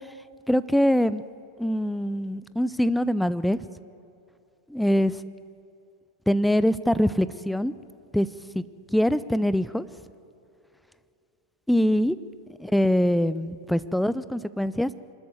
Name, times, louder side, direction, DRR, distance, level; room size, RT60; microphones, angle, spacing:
voice 1, 0.5-1.2 1.6-3.6 4.7-5.2 6.3-7.7 8.1-8.3 8.5-8.6 8.9-9.9 11.7-12.2 12.6-14.9, equal, ahead, 16 dB, 0.5 m, -23 dB
24.5 x 13.0 x 8.1 m, 2.6 s
figure-of-eight pair, 90°, 0 cm